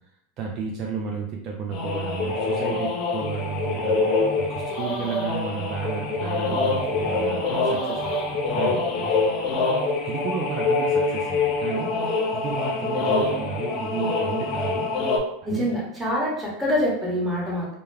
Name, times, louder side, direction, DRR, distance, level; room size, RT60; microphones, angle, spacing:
voice 1, 0.4-8.8 10.0-14.9 15.5-15.7, right 6 dB, 45° right, -1 dB, 0.4 m, -32 dB
sound 1, 1.7-15.2, left 3 dB, 50° left, 0.5 m, -25 dB
voice 2, 15.4-17.7, equal, 10° right, -6 dB, 1.1 m, -25 dB
2.2 x 2.1 x 3.2 m, 0.75 s
hypercardioid pair, 100°, 0 cm